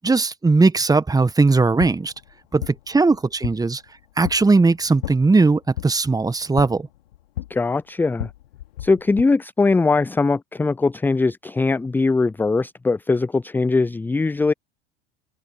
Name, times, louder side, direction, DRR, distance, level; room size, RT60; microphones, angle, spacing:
voice 1, 0.0-2.1 2.5-3.8 4.2-6.9, right 3 dB, 10° right, 1.6 m, -18 dB
sound 1, 1.5-9.2, left 13 dB, 70° left, 2.8 m, -36 dB
voice 2, 7.5-8.3 8.8-14.5, left 3 dB, 5° left, 0.4 m, -21 dB
figure-of-eight pair, 75°, 31 cm